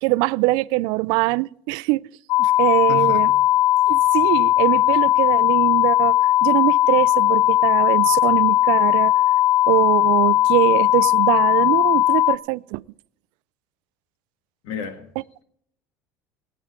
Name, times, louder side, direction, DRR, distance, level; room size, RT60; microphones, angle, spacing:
voice 1, 0.0-2.1 2.4-3.3 3.9-9.1 9.7-12.8, right 21 dB, 75° right, 0.4 m, -22 dB
sound 1, 2.3-12.4, left 14 dB, 55° left, 0.4 m, -18 dB
voice 2, 2.9-3.3 14.6-15.1, left 4 dB, 75° left, 1.8 m, -32 dB
21.5 x 9.3 x 3.7 m
supercardioid pair, 120°, 8 cm